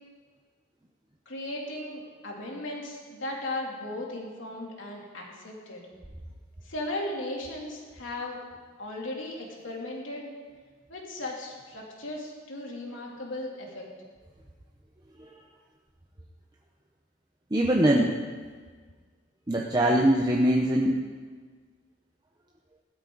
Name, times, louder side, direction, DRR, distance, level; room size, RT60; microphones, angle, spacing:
voice 1, 1.3-5.8 6.6-8.4 8.8-10.3 10.9-13.9, left 1 dB, 85° left, -2 dB, 3.1 m, -36 dB
voice 2, 17.5-18.1 19.5-21.0, right 1 dB, 20° right, -1 dB, 0.8 m, -22 dB
16.0 x 13.0 x 4.0 m, 1.5 s
head